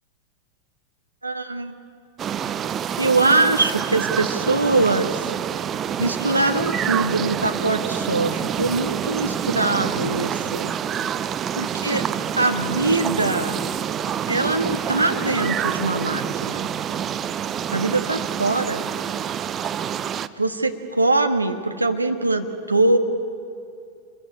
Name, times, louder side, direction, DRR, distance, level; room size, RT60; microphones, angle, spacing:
voice 1, 1.2-1.7 3.0-5.3 6.0-10.7 11.6-12.0 12.4-13.6 14.3-16.7 17.7-18.9 20.4-23.0, right 2 dB, 85° right, 5 dB, 1.6 m, -22 dB
sound 1, 2.2-20.3, right 9 dB, 25° right, 0.7 m, -27 dB
27.5 x 22.0 x 8.9 m, 2.6 s
figure-of-eight pair, 90°, 0 cm